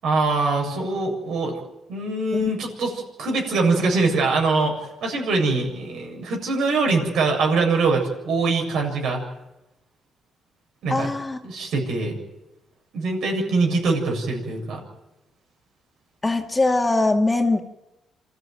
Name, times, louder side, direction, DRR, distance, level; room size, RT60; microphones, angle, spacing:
voice 1, 0.0-1.6 1.9-9.2 10.8-11.1 11.4-12.2 12.9-14.8, right 3 dB, 75° right, 2 dB, 7.3 m, -23 dB
voice 2, 10.9-11.4 16.2-17.6, left 2 dB, 20° left, 4 dB, 2.2 m, -21 dB
27.0 x 13.5 x 9.2 m, 0.94 s
cardioid pair, 90°, 0 cm